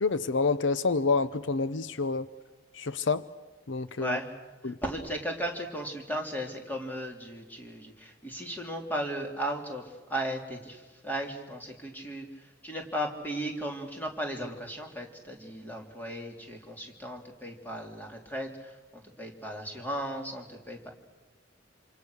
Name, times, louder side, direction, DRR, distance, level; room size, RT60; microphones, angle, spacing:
voice 1, 0.0-2.3 2.7-3.2 3.7-4.2 4.6-4.8, left 4 dB, 70° left, 14 dB, 0.7 m, -28 dB
voice 2, 4.0-4.3 4.6-20.9, equal, 10° left, 1 dB, 3.4 m, -36 dB
27.5 x 27.5 x 6.5 m, 1.2 s
head